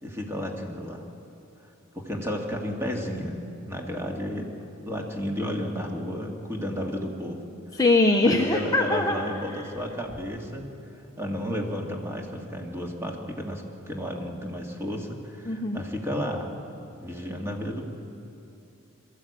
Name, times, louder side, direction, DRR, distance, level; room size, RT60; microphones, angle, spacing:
voice 1, 0.0-1.1 1.9-3.4 3.7-4.5 4.9-7.5 8.2-10.7 11.2-16.5 17.0-17.8, equal, 10° right, 1 dB, 2.1 m, -32 dB
voice 2, 7.7-9.2 9.5-9.7 15.5-15.8, left 2 dB, 15° left, 1 dB, 0.9 m, -22 dB
22.5 x 13.5 x 8.5 m, 2.7 s
head